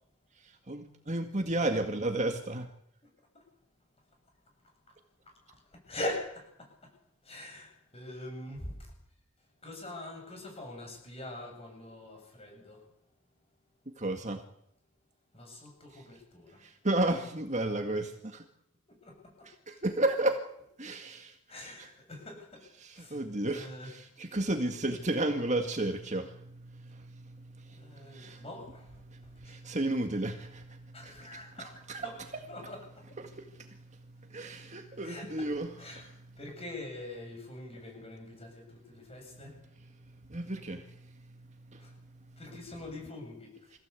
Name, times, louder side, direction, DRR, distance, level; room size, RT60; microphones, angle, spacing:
voice 1, 0.4-2.7 14.0-14.4 15.9-16.0 16.6-18.4 19.5-20.4 20.8-21.7 22.8-28.4 29.1-32.1 33.2-33.8 34.3-36.0 40.3-41.2 41.7-41.9, right 2 dB, 30° right, 5 dB, 1.9 m, -33 dB
voice 2, 5.7-6.9 7.2-8.9 9.6-12.8 15.3-16.6 18.9-19.5 21.5-22.7 22.9-23.2 23.5-23.9 27.6-29.5 30.9-32.2 32.5-33.2 34.9-35.5 35.8-36.1 36.4-39.6 41.8-41.9 42.4-43.7, left 1 dB, 25° left, 3 dB, 7.5 m, -43 dB
25.0 x 16.5 x 8.4 m, 0.73 s
head